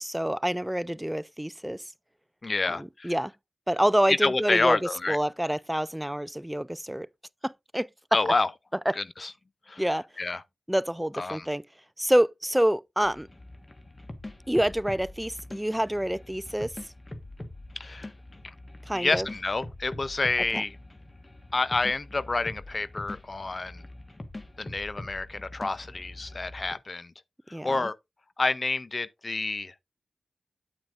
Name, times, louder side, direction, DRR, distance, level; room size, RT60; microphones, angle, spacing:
voice 1, 0.0-1.8 2.7-3.3 3.7-4.8 5.1-7.1 7.4-7.9 8.9-9.0 9.8-10.1 10.7-11.6 12.0-13.3 14.5-16.7 18.9-19.3 20.5-20.6 27.5-27.9, equal, 10° right, 0.4 m, -27 dB
voice 2, 2.4-3.1 4.1-5.2 8.1-8.5 9.0-9.3 9.7-9.8 10.2-10.4 11.2-11.5 17.8-18.1 18.4-18.5 18.9-20.8 21.5-23.8 24.6-27.1 27.6-28.0 28.4-29.7, left 3 dB, 50° left, 0.5 m, -28 dB
sound 1, 13.0-26.7, left 1 dB, 30° left, 1.3 m, -43 dB
9.0 x 8.7 x 2.5 m
cardioid pair, 40°, 0 cm